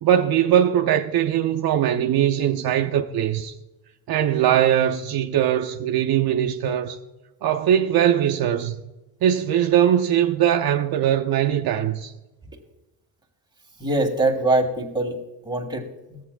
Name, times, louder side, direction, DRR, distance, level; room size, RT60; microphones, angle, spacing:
voice 1, 0.0-3.5 4.1-7.0 7.4-8.8 9.2-12.1, right 10 dB, 60° right, 0.6 m, -21 dB
voice 2, 13.8-16.2, right 2 dB, 10° right, 1.8 m, -24 dB
13.5 x 8.0 x 2.3 m
cardioid pair, 85°, 41 cm